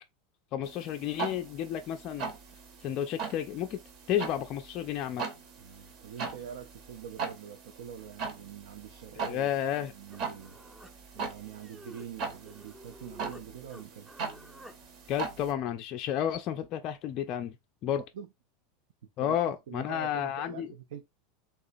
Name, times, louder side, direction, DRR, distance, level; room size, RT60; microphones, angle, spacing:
voice 1, 0.5-2.3 2.8-3.8 4.1-5.2 9.2-9.9 15.1-17.5 17.8-18.0 19.2-20.7, left 10 dB, 45° left, 0.3 m, -31 dB
sound 1, 0.6-15.5, right 5 dB, 50° right, 0.8 m, -40 dB
voice 2, 5.6-9.5 9.8-10.6 11.1-14.2 18.1-18.3 19.2-19.3 19.7-21.0, right 8 dB, 65° right, 0.3 m, -45 dB
Human voice, 10.1-13.4 13.7-14.8, equal, 10° right, 0.6 m, -52 dB
3.3 x 2.8 x 2.5 m
hypercardioid pair, 85°, 0 cm